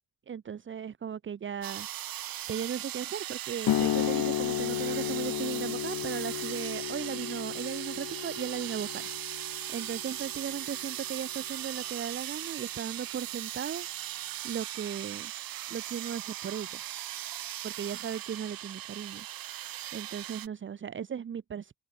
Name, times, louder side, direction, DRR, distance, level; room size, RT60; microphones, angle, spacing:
voice 1, 0.3-1.9 2.5-9.1 9.7-13.9 14.4-15.3 15.7-16.8 17.6-19.3 19.9-21.7, right 8 dB, 35° right, 1.2 m, -37 dB
sound 1, 1.6-20.5, right 13 dB, 85° right, 2.9 m, -38 dB
sound 2, 3.7-10.8, left 12 dB, 65° left, 1.6 m, -33 dB
open air
wide cardioid pair, 170°, 34 cm